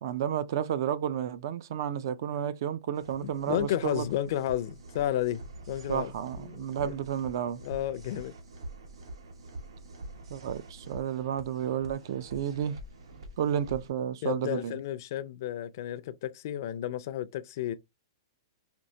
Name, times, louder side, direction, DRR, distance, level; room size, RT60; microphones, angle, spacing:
voice 1, 0.0-4.1 5.9-7.6 10.3-12.8 13.4-14.8, right 9 dB, 45° right, 0.4 m, -31 dB
sound 1, 2.9-13.9, right 1 dB, 85° right, 1.3 m, -46 dB
voice 2, 3.2-6.1 6.4-6.9 7.6-8.3 14.2-17.7, left 11 dB, 40° left, 0.4 m, -32 dB
4.4 x 2.7 x 2.7 m
hypercardioid pair, 170°, 3 cm